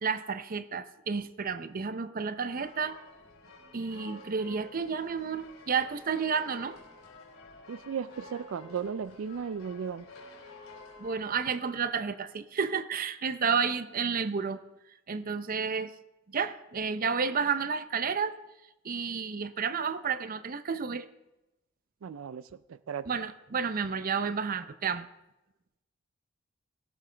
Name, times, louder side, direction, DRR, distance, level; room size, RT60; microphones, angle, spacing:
voice 1, 0.0-3.0 3.7-6.8 11.0-14.6 15.1-15.9 16.3-18.3 18.8-21.1 23.1-25.1, right 6 dB, 45° right, 0.6 m, -31 dB
sound 1, 2.5-11.5, left 3 dB, 80° left, 3.3 m, -51 dB
voice 2, 7.7-10.1 22.0-23.1, right 7 dB, 90° right, 0.4 m, -36 dB
17.5 x 14.0 x 3.4 m
head